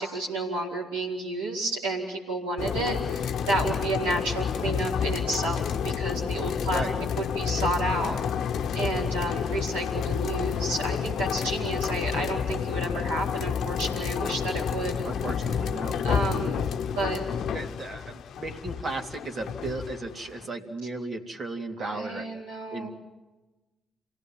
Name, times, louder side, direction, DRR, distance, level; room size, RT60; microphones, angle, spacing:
voice 1, 0.0-6.8 7.2-14.9 16.0-16.7 17.0-17.2 21.8-22.9, right 2 dB, 85° right, -6 dB, 4.6 m, -31 dB
sound 1, 2.6-20.5, left 7 dB, 65° left, 0.9 m, -30 dB
voice 2, 15.0-16.0 17.5-22.3 22.7-22.9, right 2 dB, 45° right, 3 dB, 3.1 m, -35 dB
28.0 x 17.5 x 7.6 m, 1.1 s
hypercardioid pair, 45°, 0 cm